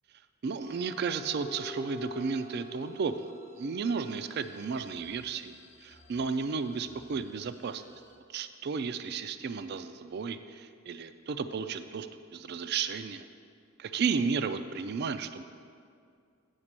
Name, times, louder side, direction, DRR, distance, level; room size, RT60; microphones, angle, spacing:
voice 1, 0.4-3.3 3.6-5.6 5.8-7.8 8.3-13.2 13.8-15.4, right 5 dB, 50° right, 11 dB, 0.4 m, -33 dB
sound 1, 0.6-8.2, equal, 35° left, 0.9 m, -48 dB
8.1 x 5.1 x 7.3 m, 2.3 s
head